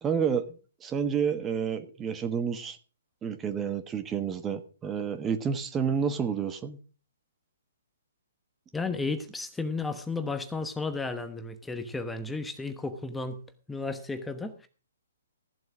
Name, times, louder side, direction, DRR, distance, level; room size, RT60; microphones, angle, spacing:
voice 1, 0.0-2.8 3.2-6.8, right 7 dB, 15° right, 10 dB, 1.2 m, -30 dB
voice 2, 8.7-13.4 13.7-14.7, left 3 dB, 5° left, 8 dB, 1.1 m, -33 dB
14.5 x 7.7 x 6.2 m, 0.37 s
figure-of-eight pair, 130°, 0 cm